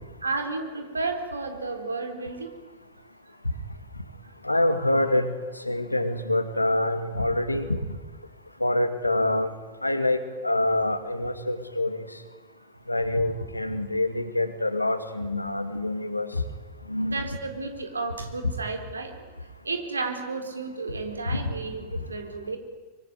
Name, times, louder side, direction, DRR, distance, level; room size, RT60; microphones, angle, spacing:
voice 1, 0.2-2.5 4.2-4.3 17.0-19.1 19.6-22.6, right 3 dB, 75° right, 5 dB, 3.9 m, -32 dB
voice 2, 4.4-5.3 5.6-7.7 8.6-9.5 9.8-12.1 12.9-16.3 16.9-17.2 21.3-21.4, left 1 dB, 85° left, 9 dB, 2.4 m, -26 dB
24.5 x 24.5 x 9.6 m, 1.3 s
figure-of-eight pair, 90°, 0 cm